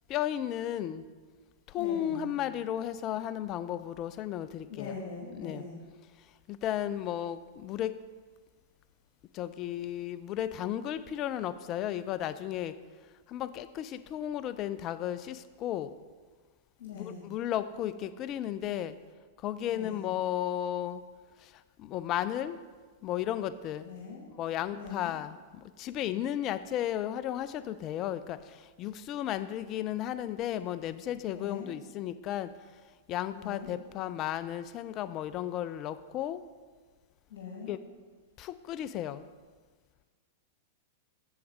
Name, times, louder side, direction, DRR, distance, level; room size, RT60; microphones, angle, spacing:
voice 1, 0.1-1.0 1.7-5.0 5.4-5.6 6.5-7.9 9.3-12.7 13.3-15.9 16.9-18.9 19.4-21.0 21.8-22.6 23.0-23.9 24.4-25.4 25.8-28.4 28.8-32.5 33.1-36.4 37.7-37.8 38.4-39.2, left 11 dB, 40° left, 14 dB, 0.4 m, -34 dB
voice 2, 1.8-2.3 4.7-5.7 16.8-17.2 19.7-20.0 23.8-24.2 24.7-25.2 31.3-31.7 33.3-33.7 37.3-37.8, left 5 dB, 60° left, -3 dB, 1.8 m, -42 dB
7.8 x 7.3 x 3.6 m, 1.4 s
hypercardioid pair, 100°, 0 cm